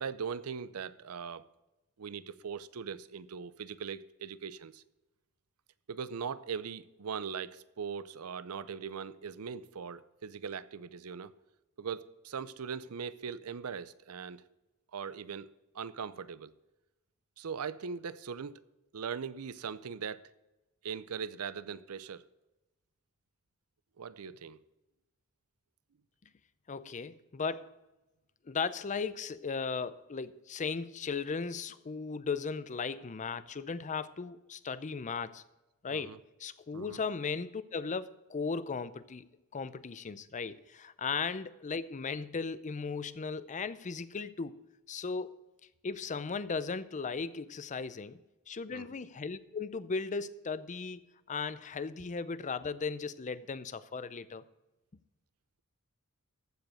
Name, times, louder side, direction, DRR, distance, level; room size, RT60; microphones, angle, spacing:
voice 1, 0.0-1.5 2.0-4.8 5.9-11.3 11.8-14.4 14.9-15.5 15.7-16.5 17.4-18.6 18.9-20.3 20.8-22.2 24.0-24.6 35.9-36.2 36.7-37.0 48.7-48.9, right 6 dB, 75° right, 0.6 m, -40 dB
voice 2, 26.7-27.7 28.5-35.4 35.8-39.3 39.5-44.6 44.9-45.4 45.8-48.2 48.5-51.0 51.3-54.4, left 5 dB, 35° left, 0.5 m, -37 dB
14.5 x 5.2 x 6.3 m
head